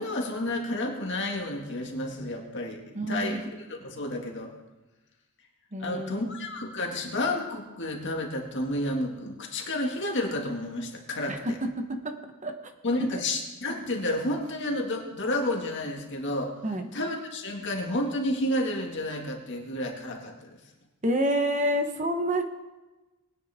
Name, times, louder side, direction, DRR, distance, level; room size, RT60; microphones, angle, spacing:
voice 1, 0.0-3.5 3.8-4.5 5.8-11.6 12.8-16.5 16.9-20.6, left 1 dB, 55° left, 1 dB, 2.0 m, -31 dB
voice 2, 2.9-3.4 5.7-6.3 11.3-12.2 12.4-12.7 13.1-13.2 16.6-16.9 21.0-22.4, equal, 35° right, 6 dB, 1.1 m, -28 dB
20.0 x 9.8 x 3.6 m, 1.1 s
head